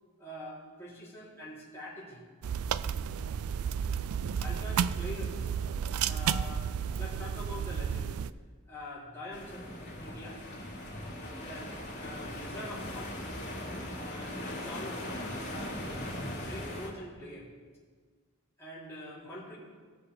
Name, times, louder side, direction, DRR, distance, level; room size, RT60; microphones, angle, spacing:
voice 1, 0.2-2.2 4.4-5.5 6.1-6.6 7.0-8.1 8.7-9.7 10.0-10.4 11.4-11.7 12.0-13.3 14.0-15.2 15.5-17.5 18.6-19.6, left 1 dB, 10° left, -9 dB, 3.8 m, -44 dB
sound 1, 2.4-8.3, right 7 dB, 85° right, 0.4 m, -32 dB
sound 2, 9.3-16.9, left 1 dB, 55° left, 3.3 m, -39 dB
19.5 x 7.0 x 3.6 m, 1.5 s
head